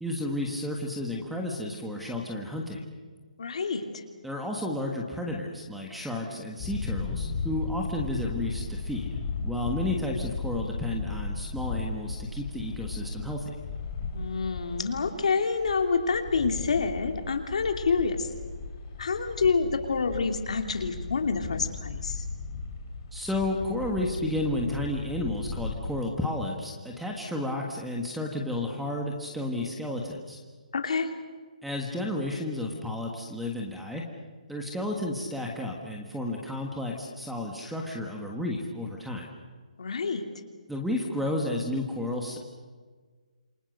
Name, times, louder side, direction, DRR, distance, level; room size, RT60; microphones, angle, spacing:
voice 1, 0.0-2.8 4.2-9.1 9.4-13.6 23.1-30.4 31.6-34.0 34.5-39.3 40.7-42.4, left 1 dB, ahead, 0 dB, 1.5 m, -32 dB
voice 2, 3.4-4.0 14.1-18.3 19.0-22.2 30.7-31.1 39.8-40.2, left 4 dB, 55° left, 5 dB, 2.9 m, -27 dB
sound 1, 6.6-26.0, left 4 dB, 25° left, 3.2 m, -36 dB
27.5 x 24.5 x 6.7 m, 1.4 s
hypercardioid pair, 175°, 4 cm